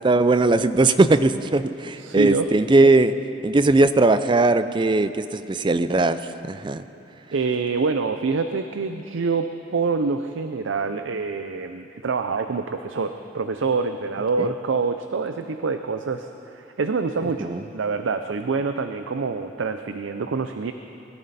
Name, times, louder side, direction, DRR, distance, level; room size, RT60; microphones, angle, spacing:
voice 1, 0.0-3.1 3.4-6.8 14.4-14.5 17.4-17.6, right 2 dB, 25° right, 12 dB, 0.4 m, -19 dB
voice 2, 2.0-2.5 7.3-20.7, right 4 dB, 80° right, 8 dB, 0.5 m, -26 dB
21.0 x 13.5 x 4.2 m, 2.8 s
head